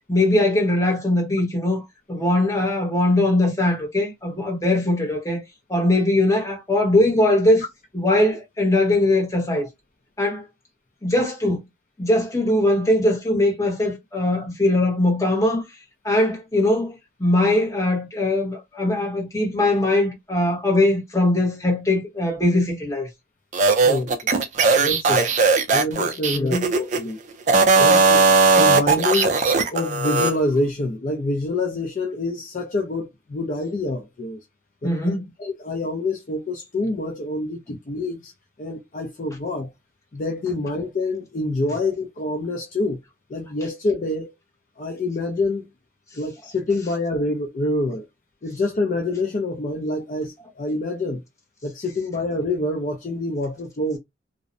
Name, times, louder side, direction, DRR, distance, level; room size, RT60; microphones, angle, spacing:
voice 1, 0.1-5.4 5.7-7.6 7.9-9.7 10.2-10.5 11.0-11.6 12.0-15.6 16.0-23.1 26.3-26.7 34.8-35.3, left 1 dB, 15° left, 0.8 m, -21 dB
sound 1, 23.5-27.0 27.4-30.3, right 4 dB, 40° right, 0.4 m, -18 dB
voice 2, 23.8-24.3 24.8-25.3 25.7-27.2 27.8-29.4 29.7-34.4 34.8-34.9 35.4-38.3 38.6-39.7 40.1-43.0 43.3-44.3 44.8-45.7 46.1-48.1 48.4-51.2 51.6-54.0, left 2 dB, 40° left, 0.4 m, -26 dB
2.5 x 2.0 x 2.5 m
head